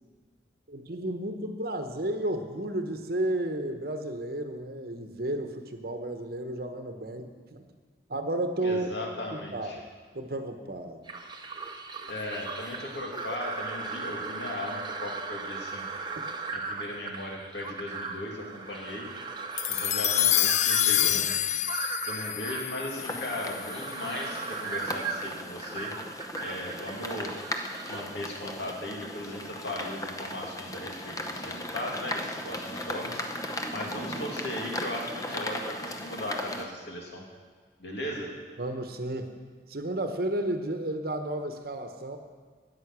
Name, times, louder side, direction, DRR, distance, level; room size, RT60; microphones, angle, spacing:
voice 1, 0.7-7.7 8.1-8.9 9.3-9.8 10.1-11.0 21.0-21.1 38.6-39.4 39.7-42.2, right 1 dB, 55° right, 7 dB, 1.0 m, -32 dB
voice 2, 8.6-9.8 12.1-15.8 16.5-19.1 19.7-21.3 22.0-25.9 26.4-27.3 27.9-33.2 33.7-37.2 37.8-38.3, left 1 dB, 70° left, -1 dB, 2.6 m, -37 dB
sound 1, 11.1-28.0, right 4 dB, 25° right, 0.8 m, -37 dB
sound 2, 19.6-24.1, left 13 dB, 40° left, 0.4 m, -27 dB
sound 3, 22.9-36.6, left 1 dB, 20° left, 0.8 m, -37 dB
13.0 x 9.1 x 6.1 m, 1.5 s
head